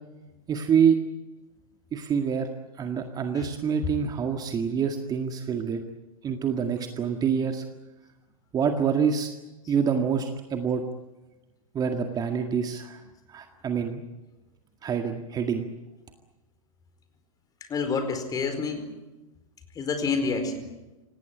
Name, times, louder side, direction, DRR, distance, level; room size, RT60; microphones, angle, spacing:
voice 1, 0.5-1.0 1.9-2.5 2.8-5.8 6.2-7.6 8.5-9.3 9.7-10.8 11.7-13.0 13.3-14.0 14.8-15.6, right 7 dB, 20° right, 5 dB, 1.9 m, -26 dB
voice 2, 17.7-18.9 19.8-20.7, left 4 dB, 20° left, 8 dB, 4.5 m, -28 dB
26.5 x 18.5 x 9.9 m, 1.1 s
figure-of-eight pair, 100°, 18 cm